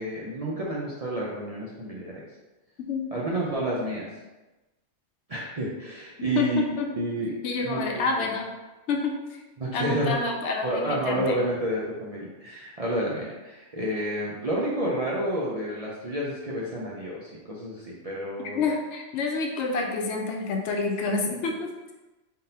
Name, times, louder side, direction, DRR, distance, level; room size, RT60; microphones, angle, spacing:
voice 1, 0.0-2.1 3.1-4.1 5.3-6.6 7.0-7.3 7.6-8.3 9.6-10.2 10.6-18.6, right 1 dB, 45° right, -5 dB, 0.5 m, -30 dB
voice 2, 6.3-6.9 7.4-8.5 8.9-9.4 9.7-11.4 18.5-21.7, left 4 dB, 70° left, 1 dB, 0.9 m, -28 dB
3.8 x 3.7 x 2.7 m, 1.1 s
omnidirectional pair, 1.3 m